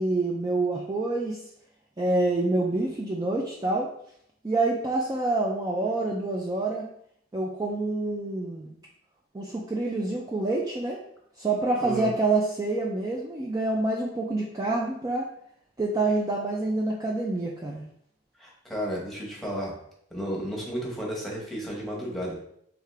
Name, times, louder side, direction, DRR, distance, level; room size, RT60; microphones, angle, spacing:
voice 1, 0.0-1.4 2.0-3.9 4.4-6.8 7.3-8.7 9.3-11.0 11.4-15.3 15.8-17.8, right 2 dB, 20° right, -2 dB, 0.4 m, -27 dB
voice 2, 11.8-12.1 18.4-19.7 20.1-22.3, equal, ahead, -3 dB, 1.1 m, -32 dB
3.6 x 3.5 x 3.3 m, 0.69 s
head